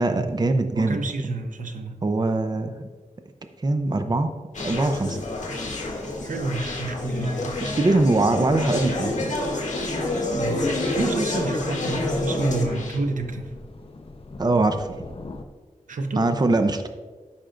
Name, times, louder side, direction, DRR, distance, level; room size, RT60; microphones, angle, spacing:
voice 1, 0.0-1.0 2.0-2.9 3.6-4.3 4.6-5.2 7.6-9.3 10.8-11.0 14.4-15.0 16.2-16.9, right 2 dB, 30° right, 7 dB, 0.6 m, -22 dB
voice 2, 0.7-2.0 6.2-7.5 10.3-13.5 15.9-16.3, right 2 dB, 80° right, 6 dB, 0.8 m, -29 dB
Conversation, 4.5-13.0, left 2 dB, 70° left, 1.7 m, -28 dB
sound 1, 4.5-15.4, left 2 dB, 45° left, 0.8 m, -44 dB
14.0 x 5.7 x 2.5 m, 1.4 s
wide cardioid pair, 85°, 13 cm